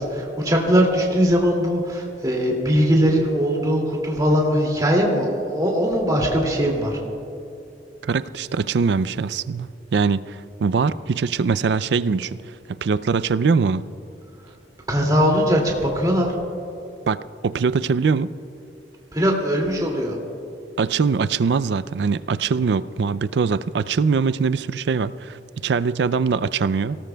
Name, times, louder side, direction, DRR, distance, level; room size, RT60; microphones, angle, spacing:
voice 1, 0.0-7.0 14.9-16.4 19.1-20.2, equal, 20° right, -1 dB, 2.4 m, -20 dB
voice 2, 8.0-12.4 12.7-13.8 17.1-17.2 17.4-18.3 20.8-27.0, right 5 dB, 70° right, 16 dB, 0.4 m, -22 dB
24.0 x 18.0 x 2.3 m, 2.7 s
head